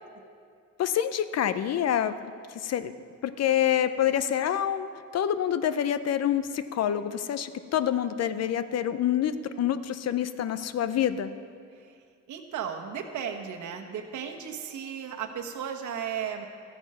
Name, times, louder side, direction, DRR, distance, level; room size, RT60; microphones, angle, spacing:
voice 1, 0.8-2.3 2.6-2.9 3.2-11.3, left 10 dB, 55° left, 12 dB, 0.6 m, -27 dB
voice 2, 12.3-16.5, right 8 dB, 75° right, 4 dB, 1.3 m, -35 dB
13.5 x 8.8 x 5.5 m, 2.3 s
cardioid pair, 90°, 30 cm